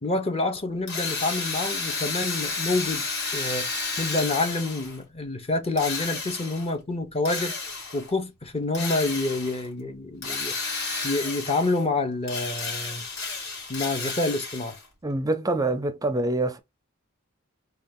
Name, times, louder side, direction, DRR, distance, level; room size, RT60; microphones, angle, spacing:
voice 1, 0.0-3.1 3.3-3.7 4.0-7.6 7.9-10.6 11.0-13.0 13.7-14.8, left 2 dB, 30° left, 0.9 m, -27 dB
Drill, 0.9-5.0 5.8-6.7 7.3-8.1 8.7-9.7 10.2-11.9 12.2-14.9, left 4 dB, 55° left, 2.6 m, -32 dB
voice 2, 15.0-16.6, right 2 dB, 15° right, 0.5 m, -25 dB
4.0 x 2.4 x 3.7 m
head